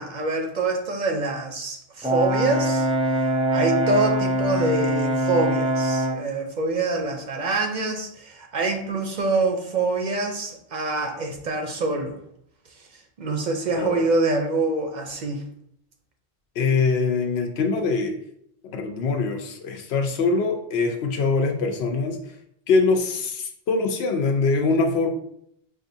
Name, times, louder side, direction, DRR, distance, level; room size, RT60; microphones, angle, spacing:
voice 1, 0.0-2.9 3.1-3.3 3.5-12.2 13.2-15.4, right 3 dB, 55° right, 3 dB, 0.6 m, -25 dB
Brass instrument, 2.0-6.3, right 1 dB, 10° right, 0.3 m, -23 dB
voice 2, 16.6-18.1 18.6-22.2 22.7-25.1, left 4 dB, 90° left, 4 dB, 0.9 m, -23 dB
4.8 x 2.5 x 2.6 m, 0.70 s
omnidirectional pair, 1.0 m